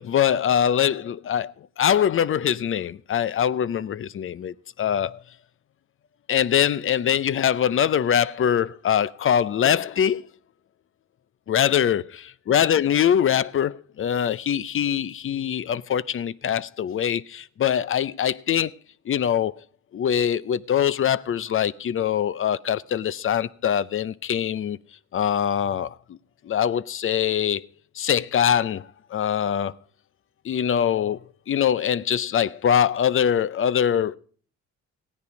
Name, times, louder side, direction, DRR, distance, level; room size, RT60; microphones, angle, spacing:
voice 1, 0.0-5.2 6.3-10.3 11.5-12.2 12.5-18.8 19.1-19.5 19.9-24.8 25.1-26.2 26.4-27.6 28.0-29.7 30.4-34.2, left 9 dB, 45° left, 0.6 m, -23 dB
15.5 x 9.7 x 5.2 m
cardioid pair, 90°, 30 cm